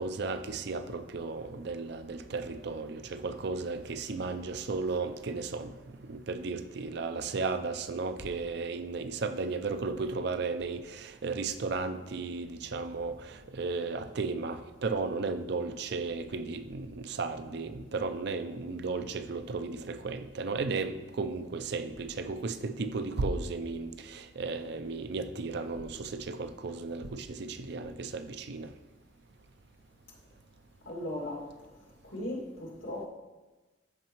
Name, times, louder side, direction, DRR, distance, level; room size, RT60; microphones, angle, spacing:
voice 1, 0.0-5.7 6.1-28.7, right 4 dB, 60° right, 11 dB, 0.5 m, -34 dB
voice 2, 30.9-31.4 32.0-33.1, left 1 dB, 90° left, -2 dB, 2.2 m, -37 dB
13.0 x 5.2 x 3.0 m, 1.2 s
head